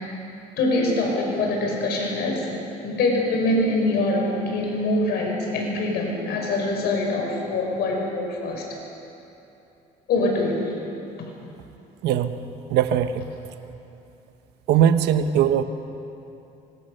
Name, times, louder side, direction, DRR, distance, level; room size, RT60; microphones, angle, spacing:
voice 1, 0.6-2.5 2.8-8.7 10.1-10.7 11.2-11.3, left 2 dB, 75° left, 0 dB, 5.9 m, -24 dB
voice 2, 12.0-12.3 12.7-13.2 14.7-15.6, right 9 dB, 80° right, 9 dB, 1.3 m, -20 dB
25.0 x 23.5 x 6.8 m, 2.8 s
cardioid pair, 110°, 17 cm